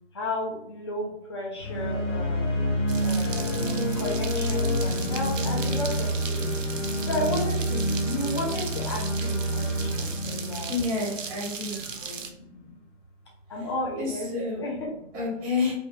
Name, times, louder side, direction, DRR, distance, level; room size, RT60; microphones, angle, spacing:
voice 1, 0.1-2.5 3.0-6.5 7.0-10.9 11.7-12.8 13.5-14.3 14.6-15.2, left 1 dB, 20° left, -2 dB, 0.5 m, -34 dB
sound 1, 1.6-11.6, equal, 75° left, 1.1 m, -28 dB
sound 2, 2.9-12.3, right 5 dB, 80° right, 0.7 m, -38 dB
voice 2, 10.7-11.8 13.6-13.7 14.0-14.6 15.1-15.7, left 4 dB, 15° right, -3 dB, 0.7 m, -29 dB
2.8 x 2.3 x 3.3 m, 0.73 s
figure-of-eight pair, 145°, 38 cm